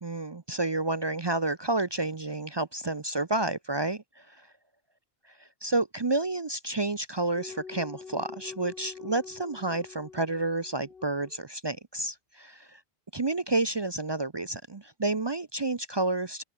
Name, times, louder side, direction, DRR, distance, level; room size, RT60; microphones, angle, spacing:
voice 1, 0.0-4.5 5.6-12.8 13.1-16.4, right 2 dB, 30° right, 0.6 m, -30 dB
sound 1, 7.4-11.5, left 5 dB, 65° left, 1.6 m, -46 dB
open air
omnidirectional pair, 1.0 m